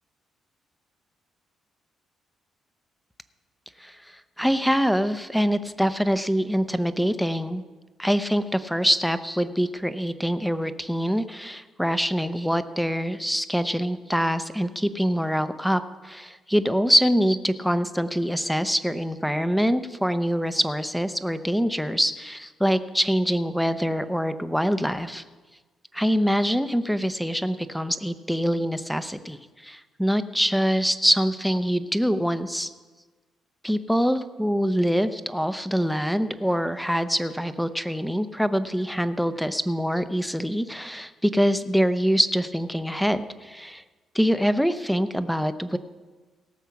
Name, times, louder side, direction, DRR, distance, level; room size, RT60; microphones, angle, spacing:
voice 1, 3.8-7.6 8.0-25.2 25.9-32.7 33.6-43.8 44.1-45.8, equal, ahead, 11 dB, 0.7 m, -24 dB
18.0 x 7.2 x 5.9 m, 1.3 s
cardioid pair, 90°, 0 cm